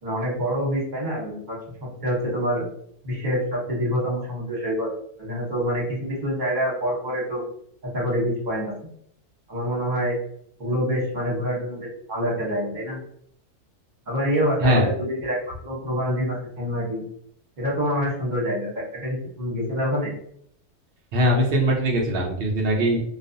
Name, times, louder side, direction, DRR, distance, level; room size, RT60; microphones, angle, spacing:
voice 1, 0.0-2.7 3.0-4.9 5.2-7.4 7.8-8.7 9.5-10.2 10.6-13.0 14.1-17.0 17.6-20.1, equal, 35° right, -4 dB, 0.9 m, -26 dB
voice 2, 21.1-23.0, equal, 85° right, -1 dB, 0.5 m, -21 dB
2.4 x 2.3 x 2.5 m, 0.67 s
omnidirectional pair, 1.6 m